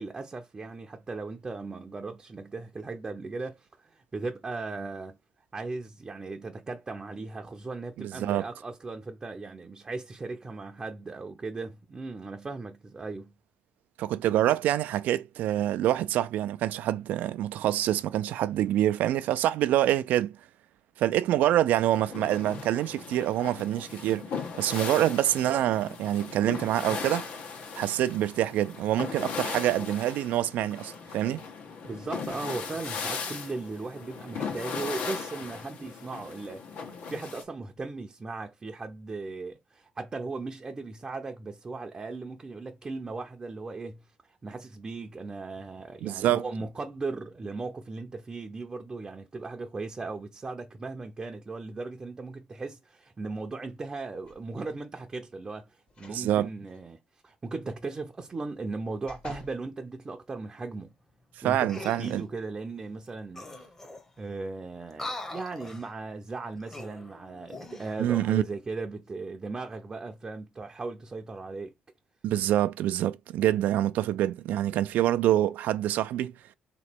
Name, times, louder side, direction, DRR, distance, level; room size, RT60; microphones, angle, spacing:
voice 1, 0.0-5.2 5.5-13.3 31.8-36.8 37.1-57.0 57.2-60.9 61.4-63.7 64.2-71.7, right 3 dB, 25° right, 0.6 m, -37 dB
voice 2, 8.0-8.4 14.0-20.3 21.0-24.3 24.6-27.2 27.8-31.4 46.0-46.4 56.1-56.5 61.4-62.2 68.0-68.4 72.2-76.3, right 13 dB, 70° right, 0.3 m, -26 dB
sound 1, 21.9-37.4, left 5 dB, 75° left, 1.3 m, -38 dB
sound 2, 54.2-54.8 55.9-56.3 56.7-56.8 58.4-59.6 60.2-60.3, left 3 dB, 40° left, 1.1 m, -49 dB
sound 3, 61.7-62.2 63.1-63.2 63.3-64.2 64.9-65.9 66.6-68.0 68.5-68.7, left 2 dB, 15° left, 0.9 m, -42 dB
3.2 x 3.0 x 4.4 m
cardioid pair, 110°, 3 cm